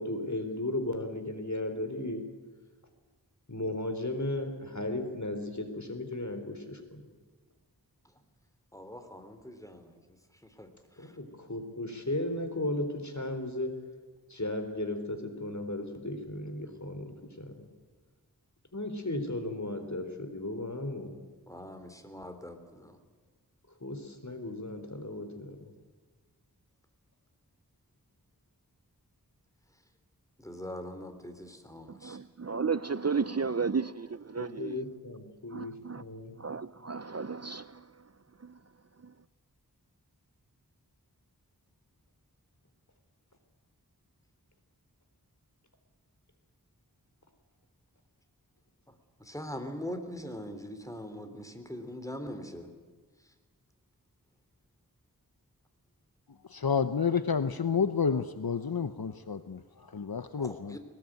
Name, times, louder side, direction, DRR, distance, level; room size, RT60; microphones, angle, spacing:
voice 1, 0.0-2.2 3.5-7.1 11.0-13.8 14.3-17.7 18.7-21.1 23.8-25.7 34.4-36.3, left 1 dB, 50° left, 4.1 m, -35 dB
voice 2, 8.7-10.0 10.4-11.2 21.5-23.0 30.4-32.2 49.2-52.7 60.4-60.8, left 1 dB, 10° left, 3.4 m, -42 dB
voice 3, 32.0-34.8 35.5-36.0 36.4-37.7, right 5 dB, 40° right, 0.6 m, -33 dB
voice 4, 56.5-60.8, left 6 dB, 70° left, 0.8 m, -30 dB
21.0 x 19.5 x 9.2 m
wide cardioid pair, 40°, 38 cm